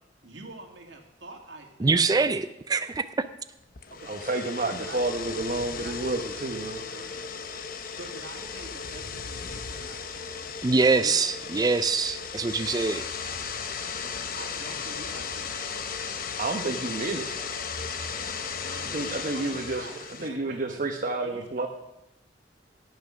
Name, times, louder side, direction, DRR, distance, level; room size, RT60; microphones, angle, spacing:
voice 1, 0.2-2.3 3.9-4.1 4.6-5.5 5.7-6.4 6.8-7.3 7.9-11.3 14.0-15.7 18.6-18.9 19.3-20.9 21.2-21.7, right 2 dB, 80° right, 2 dB, 2.3 m, -46 dB
voice 2, 1.8-3.1 10.6-13.0, right 4 dB, 20° right, 12 dB, 0.4 m, -24 dB
sound 1, 3.7-20.3, left 6 dB, 55° left, 0.9 m, -36 dB
voice 3, 4.1-6.8 16.4-17.3 18.9-19.9 20.2-21.7, right 2 dB, 50° right, 2 dB, 1.0 m, -30 dB
17.5 x 6.2 x 6.1 m, 0.92 s
head